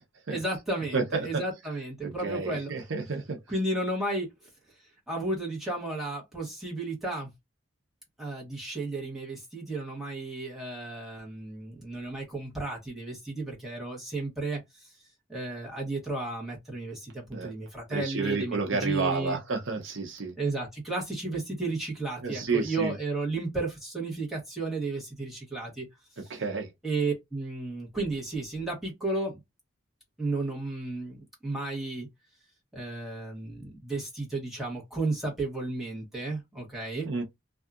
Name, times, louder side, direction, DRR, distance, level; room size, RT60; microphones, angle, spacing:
voice 1, 0.3-2.7 3.5-4.3 5.1-7.3 8.2-14.9 15.3-19.4 20.4-25.9 26.2-26.4 26.8-29.4 30.2-32.1 32.7-37.1, right 2 dB, ahead, 1.0 m, -33 dB
voice 2, 0.9-1.4 2.0-3.4 17.3-17.5 17.9-20.3 22.2-22.9 26.3-26.7 37.1-37.2, right 4 dB, 65° right, 0.7 m, -30 dB
2.7 x 2.3 x 2.4 m
head